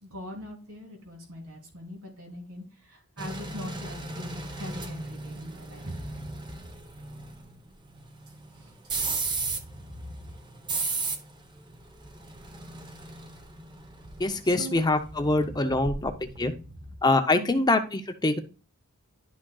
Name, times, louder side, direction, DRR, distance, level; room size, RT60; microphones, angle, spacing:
voice 1, 0.0-6.7 8.6-8.7 9.3-10.3 14.4-14.8 15.2-16.7 17.3-17.6, equal, 70° right, 0 dB, 3.2 m, -42 dB
sound 1, 3.2-16.4 16.7-16.9, right 3 dB, 20° right, 0.9 m, -36 dB
voice 2, 14.2-16.1 16.4-16.5 17.0-18.4, left 2 dB, 20° left, 7 dB, 0.6 m, -24 dB
11.0 x 6.2 x 2.3 m, 0.35 s
head